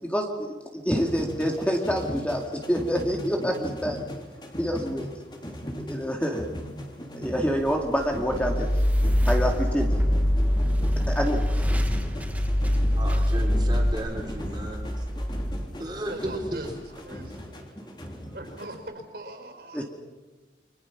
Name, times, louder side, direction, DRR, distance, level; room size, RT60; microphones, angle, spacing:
voice 1, 0.0-4.0 4.6-5.1 5.8-6.5 7.1-8.7 9.3-9.9 11.1-11.5 19.7-19.8, equal, 5° left, 1 dB, 2.2 m, -27 dB
sound 1, 0.9-18.7, equal, 25° left, 3.5 m, -39 dB
sound 2, 7.6-16.8, equal, 10° right, 1.3 m, -34 dB
sound 3, 8.3-13.9, equal, 60° left, 2.2 m, -24 dB
voice 2, 13.0-15.0 15.8-16.7, right 1 dB, 25° right, 1 dB, 3.9 m, -34 dB
voice 3, 15.9-16.7 17.1-17.6 18.3-19.8, right 1 dB, 55° right, 5 dB, 5.2 m, -41 dB
29.5 x 25.0 x 6.0 m, 1.3 s
head